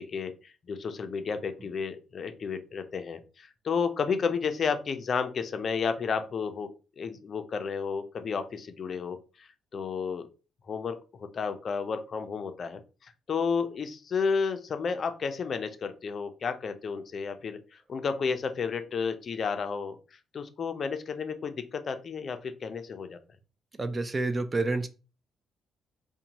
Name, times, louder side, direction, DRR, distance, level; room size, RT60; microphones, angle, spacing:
voice 1, 0.0-6.7 7.0-10.3 10.7-20.0 20.3-23.2, left 5 dB, 50° left, 8 dB, 0.4 m, -32 dB
voice 2, 23.8-24.9, right 3 dB, 25° right, 10 dB, 0.3 m, -28 dB
2.6 x 2.1 x 2.9 m, 0.33 s
cardioid pair, 90°, 0 cm